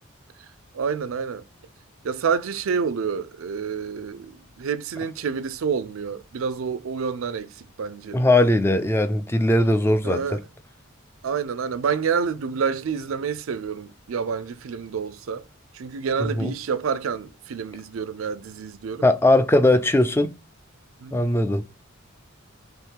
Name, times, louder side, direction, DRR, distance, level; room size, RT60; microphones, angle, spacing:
voice 1, 0.7-1.4 2.0-8.2 10.0-10.4 11.2-15.4 15.7-19.1 21.0-21.3, right 6 dB, 75° right, 0.4 m, -28 dB
voice 2, 8.1-10.4 16.2-16.5 19.0-20.3 21.1-21.6, left 1 dB, 10° left, 0.3 m, -19 dB
3.7 x 3.1 x 4.5 m
head